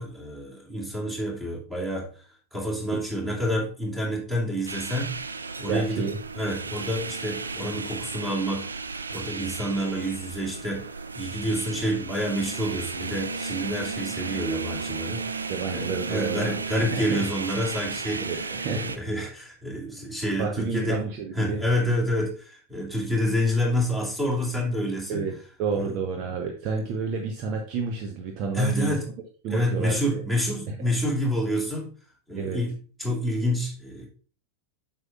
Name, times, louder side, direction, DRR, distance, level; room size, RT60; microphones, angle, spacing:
voice 1, 0.0-2.1 2.5-5.2 5.6-6.1 6.3-10.9 11.1-18.4 18.6-21.0 21.3-25.2 25.7-25.9 28.5-29.1 29.5-31.9 32.3-34.1, equal, 10° right, 2.5 m, -28 dB
sound 1, 4.7-19.0, right 4 dB, 75° right, 0.4 m, -34 dB
voice 2, 5.7-6.2 15.5-17.2 18.2-18.9 20.4-21.6 25.1-28.9 29.4-30.2 30.7-30.8 32.3-32.6, right 5 dB, 40° right, 0.8 m, -30 dB
7.8 x 5.9 x 2.4 m
figure-of-eight pair, 90°, 0 cm